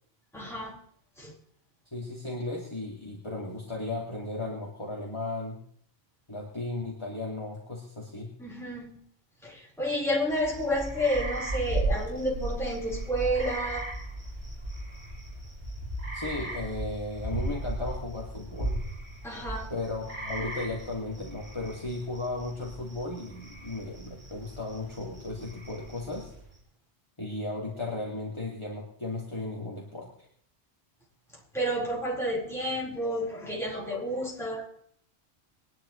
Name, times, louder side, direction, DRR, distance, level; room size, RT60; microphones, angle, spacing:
voice 1, 0.3-0.8 1.2-1.3 8.4-9.0 9.4-13.9 19.2-19.7 31.5-34.7, equal, ahead, -5 dB, 4.5 m, -30 dB
voice 2, 1.9-5.6 6.3-8.3 16.1-18.8 19.7-26.3 27.2-30.1, left 2 dB, 25° left, -4 dB, 2.6 m, -35 dB
sound 1, 10.3-26.5, right 2 dB, 65° right, 4.5 m, -36 dB
22.5 x 10.5 x 3.2 m, 0.63 s
omnidirectional pair, 1.1 m